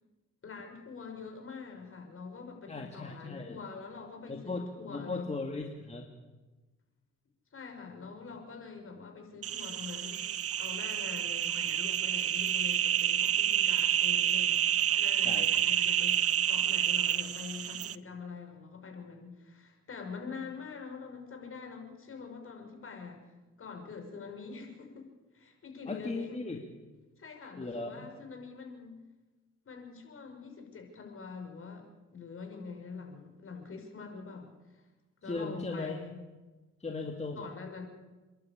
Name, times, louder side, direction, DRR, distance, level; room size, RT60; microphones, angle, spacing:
voice 1, 0.4-5.3 7.5-10.2 10.6-14.7 15.0-16.2 16.5-23.3 23.6-25.1 25.3-26.4 27.2-29.0 29.7-31.9 32.1-34.8 35.2-36.2 37.3-37.8, left 5 dB, 45° left, 3 dB, 5.7 m, -45 dB
voice 2, 2.7-3.6 4.3-6.1 15.2-15.5 25.9-26.6 27.6-28.1 35.2-36.0 36.8-37.5, left 3 dB, 20° left, 2 dB, 2.2 m, -37 dB
sound 1, 9.4-18.0, right 10 dB, 50° right, 0.7 m, -29 dB
29.5 x 11.5 x 8.7 m, 1.2 s
cardioid pair, 90°, 30 cm